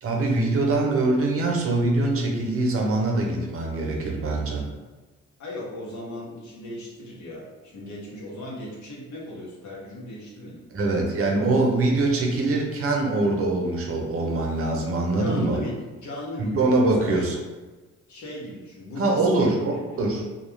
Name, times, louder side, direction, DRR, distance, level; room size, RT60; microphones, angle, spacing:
voice 1, 0.0-4.6 10.7-15.6 16.5-17.4 19.0-20.2, right 2 dB, 50° right, 0 dB, 0.6 m, -23 dB
voice 2, 5.4-10.6 15.2-17.2 18.1-20.1, left 1 dB, 70° left, -4 dB, 0.9 m, -37 dB
2.3 x 2.2 x 3.1 m, 1.3 s
cardioid pair, 90°, 30 cm